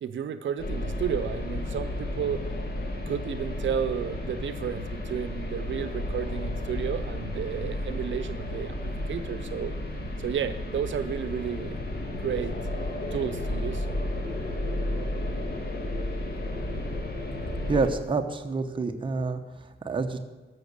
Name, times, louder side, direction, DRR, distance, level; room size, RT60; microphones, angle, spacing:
voice 1, 0.0-2.4 2.8-9.7 10.2-11.8 12.1-12.5 13.1-13.9, right 8 dB, 80° right, 11 dB, 0.6 m, -32 dB
sound 1, 0.6-17.9, left 1 dB, 55° left, 1.8 m, -32 dB
voice 2, 17.7-20.2, right 4 dB, 25° right, 5 dB, 0.9 m, -28 dB
13.5 x 6.0 x 6.7 m, 1.3 s
wide cardioid pair, 140°, 19 cm